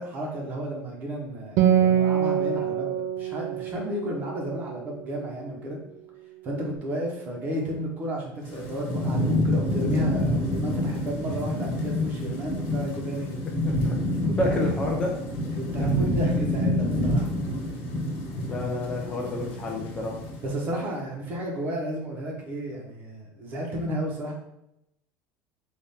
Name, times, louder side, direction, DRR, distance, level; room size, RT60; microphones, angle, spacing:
voice 1, 0.0-5.8 6.4-13.4 14.2-14.7 15.6-17.3 20.4-24.3, right 1 dB, 30° right, -1 dB, 0.8 m, -33 dB
Acoustic guitar, 1.6-5.3, right 9 dB, 50° right, 0.4 m, -25 dB
Thunderstorm / Rain, 8.4-20.7, left 1 dB, 75° left, 1.3 m, -27 dB
voice 2, 13.6-14.0 14.4-15.1 15.8-16.1 18.5-20.2, left 1 dB, 15° left, -2 dB, 0.4 m, -29 dB
4.0 x 2.5 x 3.5 m, 0.82 s
cardioid pair, 170°, 7 cm